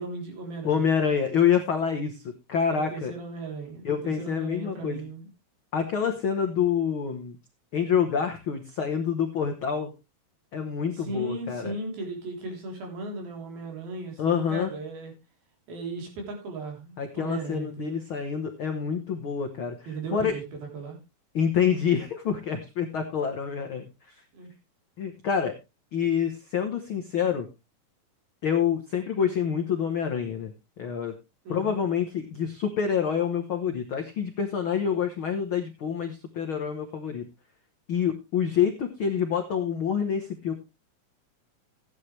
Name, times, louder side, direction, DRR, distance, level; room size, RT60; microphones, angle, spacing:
voice 1, 0.0-0.9 2.7-5.3 10.9-15.1 15.7-18.0 19.9-21.0 24.3-24.5 31.5-31.8, right 3 dB, 85° right, 2 dB, 5.4 m, -37 dB
voice 2, 0.6-3.1 3.8-5.0 5.7-7.4 7.7-9.9 10.5-11.7 14.2-14.7 17.0-20.3 21.3-24.1 25.0-25.6 25.9-27.5 28.4-31.1 31.5-37.2 37.9-40.5, left 7 dB, 70° left, 5 dB, 1.2 m, -27 dB
15.0 x 9.5 x 3.2 m, 0.25 s
omnidirectional pair, 4.2 m